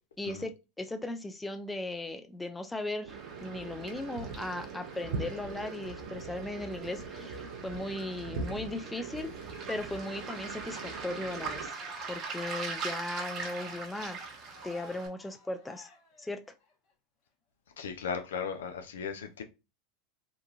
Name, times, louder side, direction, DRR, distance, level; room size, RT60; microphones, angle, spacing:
voice 1, 0.2-0.5 0.8-11.8 12.1-14.2 14.6-15.9 16.2-16.4, left 2 dB, 10° left, 0.5 m, -37 dB
sound 1, 3.0-11.7, right 4 dB, 70° right, 0.5 m, -41 dB
Waves surf, 3.1-15.1, right 4 dB, 45° right, 0.9 m, -42 dB
Cheering, 11.4-16.9, left 5 dB, 55° left, 1.0 m, -56 dB
voice 2, 17.8-19.4, left 6 dB, 80° left, 0.5 m, -36 dB
2.9 x 2.4 x 2.3 m
hypercardioid pair, 85°, 0 cm